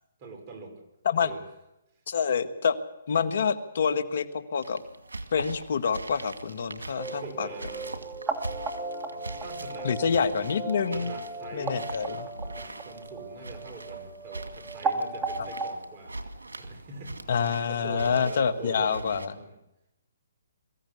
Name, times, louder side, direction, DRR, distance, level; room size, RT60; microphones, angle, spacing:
voice 1, 0.2-0.8 1.2-1.4 7.0-8.0 9.1-9.9 10.9-11.8 12.4-17.2 17.7-19.6, right 3 dB, 35° right, 4 dB, 5.7 m, -44 dB
voice 2, 2.1-2.8 3.1-4.8 5.3-7.5 9.8-11.1 11.5-12.3 15.4-15.5 17.3-19.3, left 6 dB, 60° left, 10 dB, 1.7 m, -27 dB
sound 1, 4.6-19.3, right 2 dB, 90° right, 2.2 m, -42 dB
sound 2, 7.0-15.7, right 3 dB, 15° right, 2.3 m, -35 dB
23.0 x 15.0 x 8.3 m, 0.88 s
hypercardioid pair, 140°, 0 cm